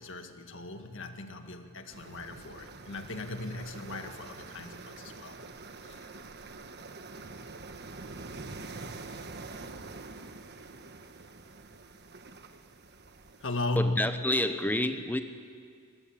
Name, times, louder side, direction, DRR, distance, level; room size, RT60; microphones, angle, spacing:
voice 1, 0.0-5.4 5.8-6.1 9.1-9.2 13.4-14.1, left 2 dB, 60° left, 6 dB, 1.8 m, -37 dB
sound 1, 1.9-13.6, right 3 dB, 50° right, 1.3 m, -45 dB
voice 2, 13.8-15.2, left 1 dB, 10° left, 8 dB, 1.0 m, -28 dB
23.5 x 21.5 x 8.7 m, 2.1 s
head